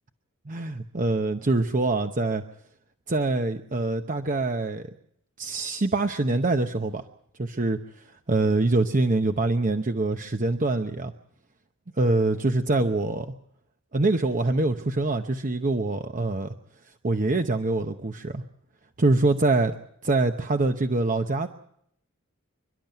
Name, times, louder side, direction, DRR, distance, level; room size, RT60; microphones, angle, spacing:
voice 1, 0.5-2.4 3.1-4.8 5.4-7.0 7.4-7.8 8.3-11.1 12.0-13.3 13.9-16.5 17.0-18.4 19.0-19.8 20.0-21.5, right 2 dB, 40° right, 6 dB, 0.9 m, -24 dB
28.0 x 12.0 x 9.1 m, 0.72 s
head